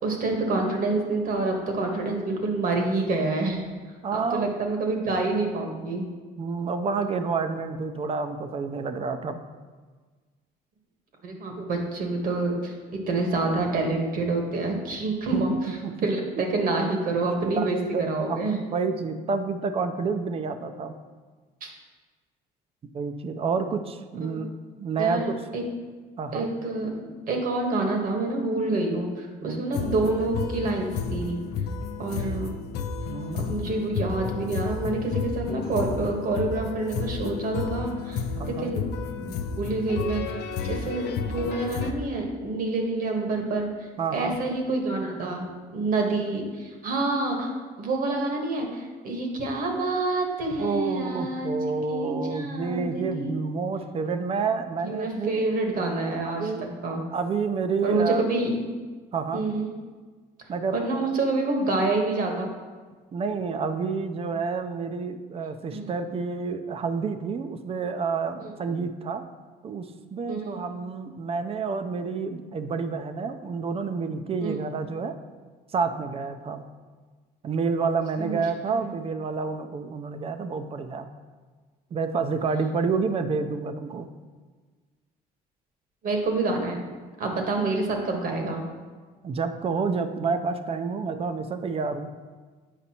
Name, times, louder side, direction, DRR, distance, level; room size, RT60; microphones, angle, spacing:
voice 1, 0.0-3.7 4.1-6.1 11.2-18.6 21.6-21.7 24.2-24.5 25.0-25.6 26.3-26.9 27.3-31.4 32.0-32.6 33.3-38.8 39.2-47.5 47.8-51.5 51.9-53.6 54.8-57.0 57.8-58.7 59.3-59.7 60.7-62.5 65.7-65.9 68.4-68.5 70.3-70.6 74.4-74.6 78.2-78.4 78.7-78.9 86.0-86.8 87.2-88.6, right 2 dB, 55° right, 2 dB, 1.3 m, -27 dB
voice 2, 4.0-4.5 6.4-9.4 15.3-15.4 15.8-15.9 17.5-18.4 18.7-20.9 22.9-24.5 24.8-25.3 26.2-26.5 29.4-29.6 33.0-33.5 38.3-38.8 44.0-44.4 50.6-55.4 56.2-56.7 57.1-58.2 59.1-59.4 60.5-60.8 63.1-69.2 69.6-75.2 75.7-76.7 77.4-81.1 81.9-84.1 89.2-92.1, right 5 dB, 35° right, 9 dB, 0.5 m, -29 dB
sound 1, 29.7-41.9, left 5 dB, 75° left, 0.5 m, -32 dB
8.2 x 5.1 x 2.9 m, 1.4 s
cardioid pair, 110°, 17 cm